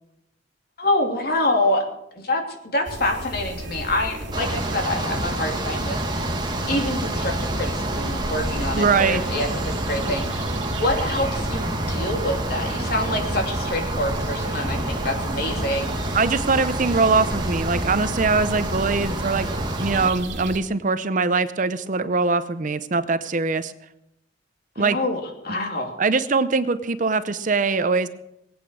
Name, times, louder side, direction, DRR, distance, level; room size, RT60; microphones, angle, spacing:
voice 1, 0.8-1.9 2.2-6.0 6.7-10.4 10.7-16.2 24.8-26.0, left 1 dB, 55° left, 3 dB, 2.9 m, -26 dB
sound 1, 2.8-20.6, right 1 dB, 85° right, 2.1 m, -34 dB
sound 2, 4.3-20.1, right 1 dB, 25° right, 1.7 m, -28 dB
voice 2, 8.7-9.2 16.1-19.5 19.8-23.7 24.8-25.0 26.0-28.1, right 4 dB, 45° right, 13 dB, 0.7 m, -22 dB
21.0 x 8.9 x 6.4 m, 0.84 s
head